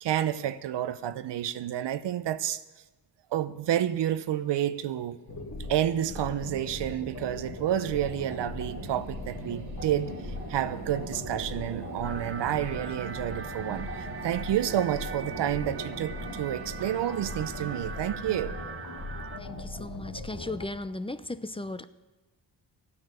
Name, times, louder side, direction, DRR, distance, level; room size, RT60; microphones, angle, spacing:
voice 1, 0.0-2.6 3.3-5.2 5.7-18.6, right 11 dB, 85° right, 0.7 m, -30 dB
sound 1, 5.0-20.0, right 5 dB, 65° right, 1.4 m, -45 dB
sound 2, 5.3-20.6, left 2 dB, 60° left, 2.5 m, -40 dB
Dreamy Piano Atmosphere, 12.0-19.4, right 6 dB, 30° right, 0.7 m, -42 dB
voice 2, 19.4-21.9, left 2 dB, 15° left, 0.7 m, -36 dB
15.5 x 9.6 x 6.8 m
cardioid pair, 75°, 41 cm